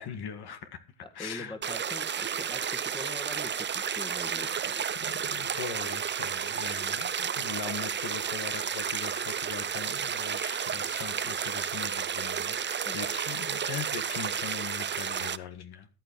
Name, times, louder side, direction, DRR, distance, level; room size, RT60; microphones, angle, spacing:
voice 1, 0.0-0.8 1.1-1.6 4.9-15.9, left 7 dB, 60° left, 8 dB, 1.9 m, -40 dB
voice 2, 1.0-4.9 12.9-13.0, left 1 dB, 10° left, 6 dB, 2.0 m, -43 dB
sound 1, 1.6-15.4, right 7 dB, 25° right, 0.6 m, -32 dB
14.0 x 9.1 x 4.7 m, 0.32 s
cardioid pair, 100°, 44 cm